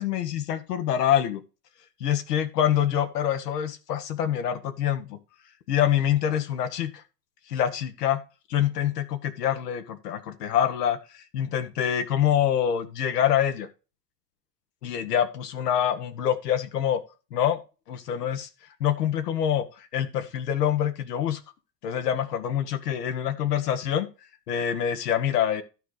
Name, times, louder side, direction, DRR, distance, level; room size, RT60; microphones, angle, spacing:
voice 1, 0.0-1.4 2.0-5.2 5.7-7.0 7.5-8.2 8.5-13.7 14.8-17.0 17.3-17.6 17.9-18.5 18.8-21.4 21.8-24.1 24.5-25.6, left 10 dB, 80° left, 7 dB, 1.5 m, -25 dB
12.5 x 4.9 x 4.0 m, 0.31 s
hypercardioid pair, 90°, 47 cm